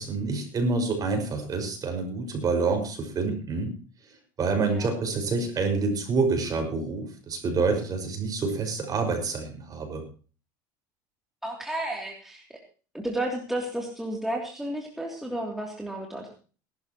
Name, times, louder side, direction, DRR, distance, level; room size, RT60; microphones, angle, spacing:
voice 1, 0.0-3.7 4.4-10.0, right 4 dB, 35° right, 4 dB, 5.8 m, -27 dB
voice 2, 4.6-4.9 11.4-12.4 12.9-16.3, right 1 dB, 5° right, -1 dB, 3.1 m, -32 dB
20.0 x 12.0 x 3.1 m, 0.37 s
supercardioid pair, 100°, 11 cm